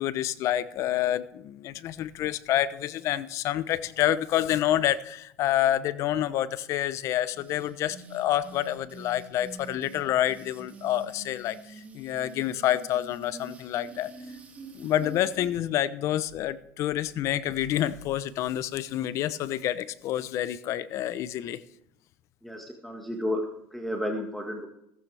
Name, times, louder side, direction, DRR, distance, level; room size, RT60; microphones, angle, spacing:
voice 1, 0.0-14.1 14.7-21.6, left 12 dB, 55° left, 16 dB, 0.8 m, -28 dB
sound 1, 7.3-15.6, right 3 dB, 25° right, 4.0 m, -46 dB
voice 2, 22.4-24.7, left 1 dB, ahead, 2 dB, 1.7 m, -32 dB
16.5 x 15.0 x 3.5 m, 0.77 s
supercardioid pair, 110°, 6 cm